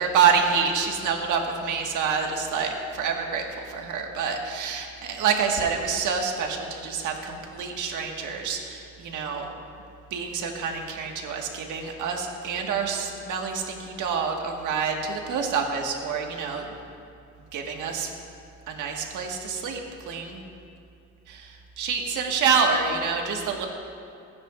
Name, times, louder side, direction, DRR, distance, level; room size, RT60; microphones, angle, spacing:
voice 1, 0.0-9.5 10.1-16.6 17.5-18.1 18.7-19.8 20.0-20.4 21.3-23.7, right 6 dB, 85° right, 2 dB, 1.6 m, -27 dB
25.5 x 9.6 x 2.5 m, 2.5 s
cardioid pair, 90°, 30 cm